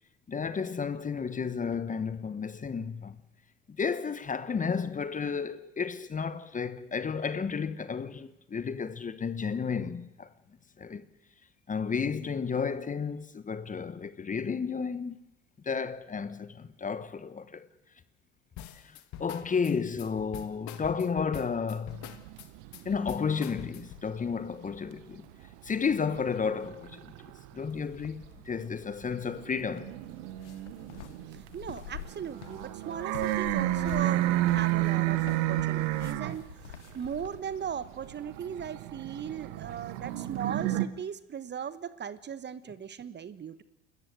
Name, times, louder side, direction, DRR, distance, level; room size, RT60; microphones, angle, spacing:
voice 1, 0.3-3.2 3.8-10.3 10.8-11.1 11.7-15.2 15.6-17.7 18.8-22.1 22.8-25.3 25.6-27.1 27.5-30.0, left 5 dB, 25° left, 1.1 m, -32 dB
sound 1, 18.6-24.1, left 12 dB, 55° left, 1.8 m, -44 dB
sound 2, 21.9-24.9 25.1-27.7 28.2-40.9, right 16 dB, 70° right, 1.5 m, -32 dB
sound 3, 27.8-37.4, left 13 dB, 90° left, 1.0 m, -47 dB
voice 2, 31.3-36.5 36.9-43.6, right 8 dB, 30° right, 1.2 m, -38 dB
29.5 x 14.0 x 8.0 m
hypercardioid pair, 80°, 34 cm